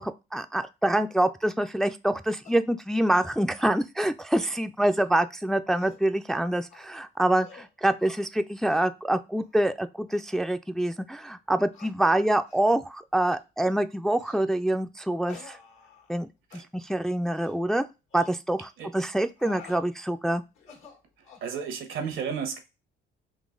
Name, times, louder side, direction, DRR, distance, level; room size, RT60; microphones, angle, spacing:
voice 1, 0.0-15.6 16.1-16.3 16.5-17.9 18.1-20.4, right 1 dB, ahead, 0.3 m, -26 dB
sound 1, 2.4-2.6 3.1-3.3 3.6-3.8 4.2-4.6 4.9-5.1 5.5-6.0 6.7-7.0 7.4-7.7 8.0-8.2 8.7-8.8 9.4-9.7 10.1-10.2 10.8-10.9 11.7-11.9 12.5-12.7 13.2-13.4 14.2-14.4 15.3-16.2 16.5-16.6 17.3-17.6 18.1-18.3 19.1-19.8 20.5-21.5, left 7 dB, 90° left, 1.5 m, -50 dB
voice 2, 21.4-22.6, right 6 dB, 85° right, 1.2 m, -32 dB
3.9 x 2.8 x 3.8 m
cardioid pair, 90°, 20 cm